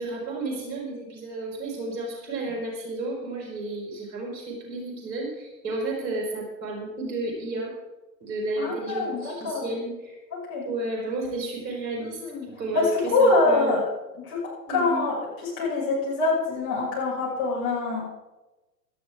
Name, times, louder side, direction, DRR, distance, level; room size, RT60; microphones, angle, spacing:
voice 1, 0.0-7.7 8.2-10.2 10.6-13.8 14.7-15.0, right 2 dB, 30° right, -1 dB, 5.1 m, -32 dB
voice 2, 8.6-9.6 10.3-10.6 12.0-12.5 12.7-13.8 14.2-15.2 15.4-18.0, left 3 dB, 25° left, -5 dB, 6.4 m, -25 dB
17.5 x 13.5 x 3.6 m, 1.1 s
figure-of-eight pair, 115°, 50 cm